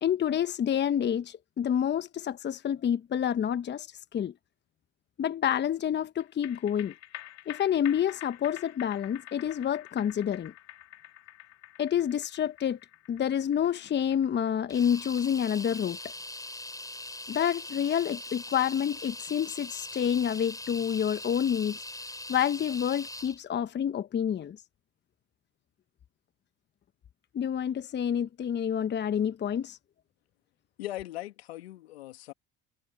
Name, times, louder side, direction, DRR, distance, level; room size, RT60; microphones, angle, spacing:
voice 1, 0.0-3.9 4.1-4.3 5.2-6.9 7.5-10.5 11.8-12.8 13.1-16.0 17.3-21.8 22.3-24.6 27.3-29.8, left 9 dB, 35° left, 1.0 m, -28 dB
sound 1, 6.2-18.9 19.2-19.3, left 14 dB, 55° left, 3.9 m, -48 dB
sound 2, 14.7-23.4, left 2 dB, 10° left, 4.3 m, -41 dB
voice 2, 30.8-32.3, left 15 dB, 85° left, 2.5 m, -39 dB
hypercardioid pair, 70°, 31 cm